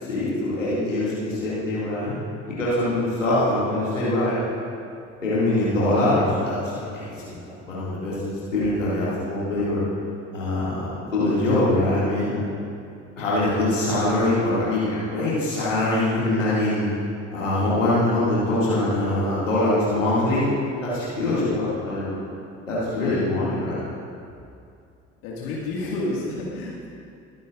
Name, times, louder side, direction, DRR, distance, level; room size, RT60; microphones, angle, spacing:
voice 1, 0.0-2.1 2.5-4.4 5.2-7.4 7.7-8.2 8.5-9.8 10.3-12.4 13.2-16.9 17.3-20.5 20.8-22.1 22.7-23.9, left 1 dB, 85° left, -9 dB, 2.4 m, -23 dB
voice 2, 21.2-21.8 22.9-23.2 25.2-27.0, left 2 dB, 65° left, -5 dB, 2.1 m, -31 dB
22.0 x 9.3 x 2.5 m, 2.5 s
figure-of-eight pair, 50°, 37 cm